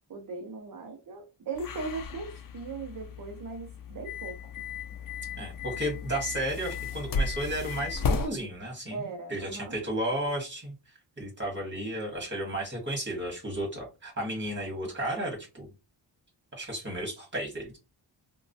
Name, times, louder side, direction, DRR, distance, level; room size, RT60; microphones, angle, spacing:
voice 1, 0.1-4.5 8.9-9.7, right 4 dB, 50° right, 0.6 m, -39 dB
sound 1, 1.5-8.3, left 4 dB, 50° left, 0.5 m, -34 dB
voice 2, 5.4-10.7 11.2-15.7 16.5-17.8, right 1 dB, 25° right, 1.4 m, -33 dB
3.0 x 2.2 x 2.6 m
wide cardioid pair, 140°, 43 cm